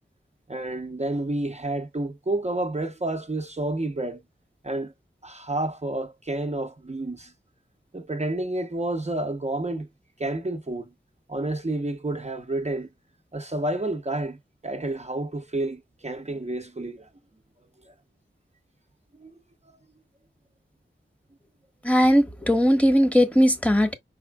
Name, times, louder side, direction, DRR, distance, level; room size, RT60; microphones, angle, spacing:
voice 1, 0.5-4.2 4.6-4.9 5.2-7.3 7.9-9.9 10.2-10.9 11.3-12.9 13.3-17.1 17.9-18.0 19.2-19.3, right 2 dB, 35° right, 0.8 m, -30 dB
voice 2, 21.8-24.0, equal, 5° left, 1.3 m, -19 dB
5.5 x 4.2 x 2.3 m
wide cardioid pair, 55°, 21 cm